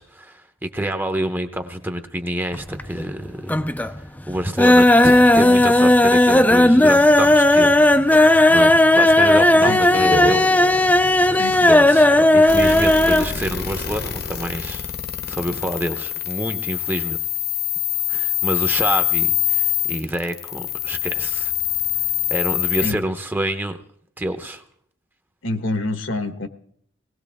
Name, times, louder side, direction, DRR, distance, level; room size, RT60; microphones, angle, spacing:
voice 1, 0.0-3.4 3.8-3.9 4.3-10.9 11.3-11.4 11.6-14.9 15.3-17.2 18.1-21.5 22.3-23.8 24.2-24.6, right 1 dB, 10° right, 8 dB, 0.8 m, -27 dB
sound 1, 2.5-3.2 3.4-4.0 4.3-13.3 13.6-13.7 14.0-14.1, left 1 dB, 10° left, 0.5 m, -14 dB
sound 2, 9.4-12.9, equal, 40° right, 0.9 m, -32 dB
voice 2, 11.3-11.7 22.8-23.0 25.4-26.5, left 2 dB, 70° left, 9 dB, 1.3 m, -26 dB
sound 3, 12.5-22.9, left 12 dB, 50° left, 1.1 m, -25 dB
19.5 x 17.0 x 3.5 m, 0.64 s
head